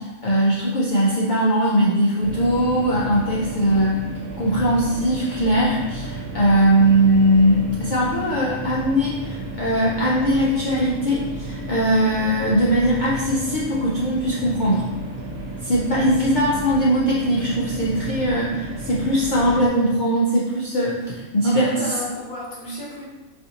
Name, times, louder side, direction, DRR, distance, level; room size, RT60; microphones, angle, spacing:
voice 1, 0.0-4.0 4.4-14.9 15.6-21.9, equal, 80° left, -6 dB, 0.4 m, -20 dB
sound 1, 2.2-19.7, right 2 dB, 85° right, 1.2 m, -33 dB
voice 2, 21.4-23.0, left 1 dB, 40° left, -5 dB, 0.9 m, -32 dB
4.2 x 2.6 x 2.8 m, 1.1 s
omnidirectional pair, 1.5 m